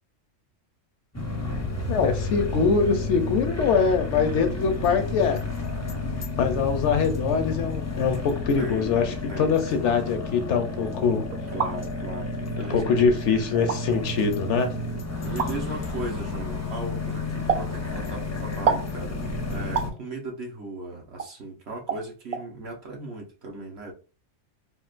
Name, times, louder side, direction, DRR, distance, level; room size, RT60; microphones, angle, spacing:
sound 1, 1.1-19.9, left 3 dB, 20° left, 0.4 m, -31 dB
voice 1, 1.9-5.4 6.4-11.2 12.6-14.7, left 5 dB, 70° left, 7 dB, 0.9 m, -23 dB
voice 2, 8.3-8.9 9.3-9.6 11.5-13.0 15.2-23.9, right 2 dB, 60° right, 0 dB, 1.2 m, -37 dB
sound 2, 11.3-11.7 12.6-12.7 13.5-13.8 15.4-15.5 17.5-17.7 18.7-18.9 19.7-19.9 21.2-21.3 21.9-22.0 22.3-22.4, right 6 dB, 75° right, 0.3 m, -26 dB
3.6 x 2.4 x 2.4 m, 0.34 s
omnidirectional pair, 1.3 m